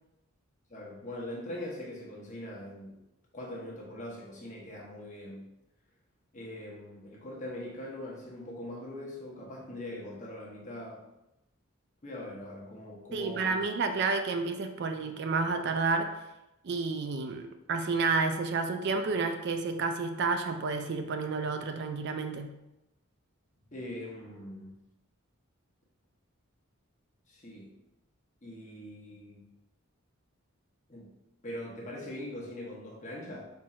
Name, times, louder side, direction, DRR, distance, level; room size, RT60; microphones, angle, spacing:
voice 1, 0.7-3.0 3.3-5.5 6.3-11.1 12.0-13.7 23.7-24.7 27.3-27.7 28.4-29.5 30.9-31.1 31.4-33.4, left 1 dB, 35° left, -3 dB, 1.1 m, -42 dB
voice 2, 13.1-16.1 16.6-22.5, right 4 dB, 55° right, 6 dB, 0.4 m, -30 dB
4.4 x 2.5 x 4.3 m, 0.91 s
head